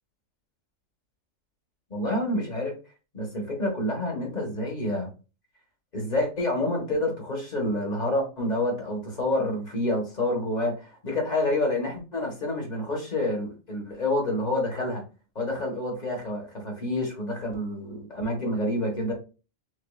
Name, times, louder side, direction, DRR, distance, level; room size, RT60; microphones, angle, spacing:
voice 1, 1.9-2.7 3.1-5.1 5.9-15.1 15.3-19.1, left 1 dB, 35° left, 0 dB, 1.5 m, -28 dB
6.4 x 2.8 x 2.4 m, 0.33 s
omnidirectional pair, 1.4 m